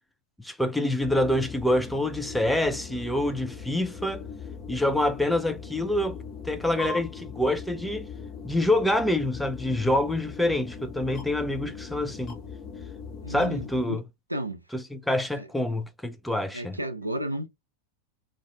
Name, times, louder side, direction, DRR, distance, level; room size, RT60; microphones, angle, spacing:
voice 1, 0.4-4.2 4.7-6.2 6.4-8.1 8.4-12.4 13.3-14.0 14.7-16.8, left 1 dB, 5° left, 0.5 m, -26 dB
sound 1, 1.0-13.9, left 5 dB, 35° left, 1.1 m, -40 dB
voice 2, 13.2-14.0 14.3-14.6 15.4-15.5 16.5-17.5, right 1 dB, 85° right, 0.5 m, -33 dB
2.5 x 2.5 x 3.3 m
figure-of-eight pair, 90°, 0 cm